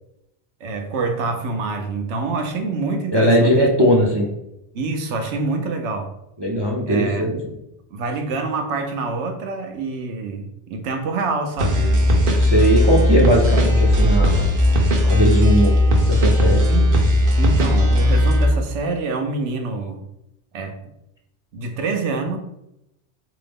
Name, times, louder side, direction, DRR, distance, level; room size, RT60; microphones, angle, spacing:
voice 1, 0.6-3.9 4.7-6.1 6.8-7.3 7.9-12.0 12.9-13.1 13.5-13.6 16.7-16.9 17.4-20.0 20.5-20.8 21.5-22.4, right 3 dB, 85° right, 5 dB, 1.0 m, -26 dB
voice 2, 3.1-4.3 6.4-7.4 12.4-14.5 15.0-15.7 16.1-16.6, equal, 35° right, -1 dB, 0.4 m, -18 dB
sound 1, 11.6-18.5, left 1 dB, 55° right, 0.8 m, -17 dB
3.7 x 2.9 x 3.5 m, 0.85 s
omnidirectional pair, 1.2 m